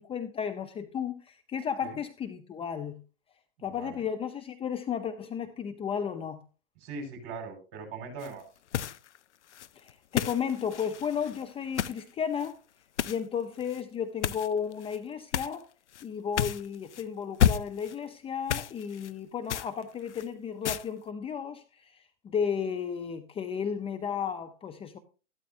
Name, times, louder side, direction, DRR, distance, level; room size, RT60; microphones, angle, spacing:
voice 1, 0.0-3.0 3.6-6.4 9.8-12.6 13.0-15.7 16.0-25.0, left 7 dB, 15° left, 0.7 m, -33 dB
voice 2, 3.6-4.0 6.8-8.5, right 4 dB, 40° right, 5.3 m, -40 dB
sound 1, 8.2-8.4 8.7-9.2 9.5-12.0 12.3-12.5 13.0-13.2 13.6-13.8 14.2-15.0 15.3-15.6 15.9-16.0 16.4-17.0 17.4-18.0 18.5-19.1 19.5-20.3 20.7-20.9, left 9 dB, 80° left, 0.7 m, -31 dB
13.5 x 12.5 x 2.6 m
hypercardioid pair, 115°, 34 cm